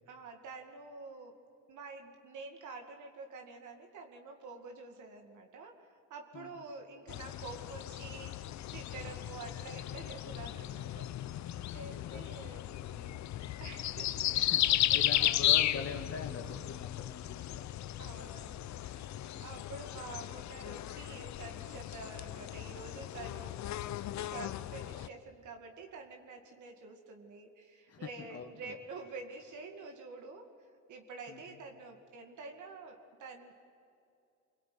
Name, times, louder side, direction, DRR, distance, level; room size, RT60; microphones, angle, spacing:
voice 1, 0.1-1.3 1.7-13.3 13.6-15.4 18.0-23.6 24.1-33.6, right 4 dB, 75° right, 4 dB, 2.4 m, -48 dB
sound 1, 7.1-25.1, left 13 dB, 70° left, 0.8 m, -35 dB
voice 2, 11.9-12.6 14.3-17.7 19.1-19.5 27.9-28.7 31.3-31.6, left 5 dB, 50° left, 4 dB, 1.9 m, -44 dB
25.5 x 23.0 x 9.4 m, 2.6 s
cardioid pair, 90°, 30 cm